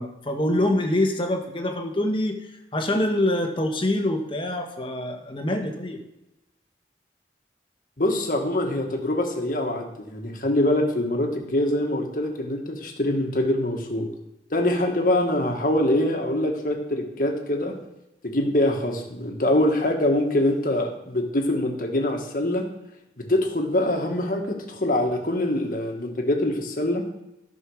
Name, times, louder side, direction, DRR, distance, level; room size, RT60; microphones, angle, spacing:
voice 1, 0.0-2.4 2.7-6.0, left 1 dB, 30° left, 3 dB, 1.4 m, -25 dB
voice 2, 8.0-14.1 14.5-17.7 18.2-22.7 23.2-27.0, left 1 dB, 50° left, 2 dB, 1.7 m, -24 dB
13.0 x 5.4 x 6.4 m, 0.91 s
head